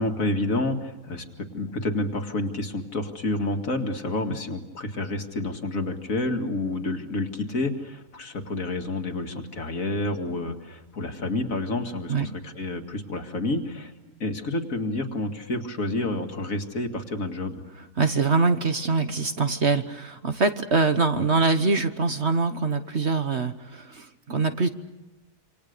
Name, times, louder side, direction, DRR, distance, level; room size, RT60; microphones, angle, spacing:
voice 1, 0.0-13.9 14.2-17.6 21.1-21.3, left 2 dB, 55° left, 5 dB, 2.5 m, -29 dB
voice 2, 18.0-24.7, right 4 dB, 45° right, 8 dB, 1.4 m, -24 dB
27.5 x 26.5 x 6.7 m, 1.1 s
omnidirectional pair, 1.7 m